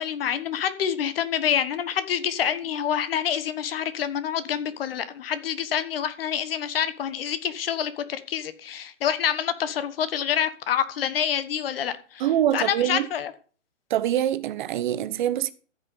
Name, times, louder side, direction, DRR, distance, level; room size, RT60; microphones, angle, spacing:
voice 1, 0.0-12.3 12.5-13.3, left 9 dB, 50° left, 1.3 m, -27 dB
voice 2, 12.2-13.1 13.9-15.5, right 11 dB, 40° right, 1.0 m, -24 dB
14.0 x 6.0 x 5.4 m
hypercardioid pair, 140°, 38 cm